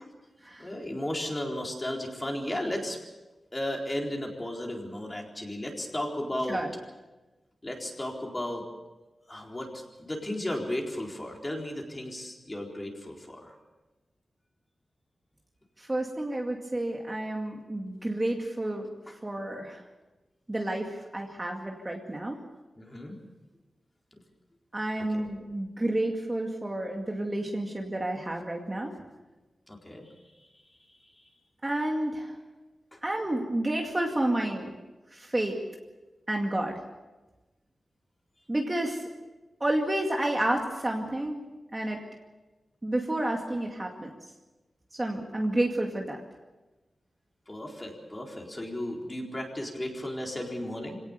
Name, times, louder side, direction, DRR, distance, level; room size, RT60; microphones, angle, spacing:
voice 1, 0.6-3.0 3.5-6.6 7.6-8.7 9.3-13.5 19.1-19.2 22.8-23.2 29.7-30.1 30.3-30.5 30.8-31.3 32.9-33.0 47.5-51.0, left 1 dB, 20° left, 0 dB, 4.2 m, -35 dB
voice 2, 15.8-18.9 19.2-19.8 20.5-22.4 24.7-28.9 31.6-32.3 33.0-34.7 35.1-35.6 36.3-36.8 38.5-39.0 39.6-41.4 41.7-42.0 42.8-44.1 44.9-46.2, right 1 dB, 20° right, 1 dB, 2.2 m, -30 dB
25.5 x 18.0 x 6.9 m, 1.1 s
wide cardioid pair, 115°, 0 cm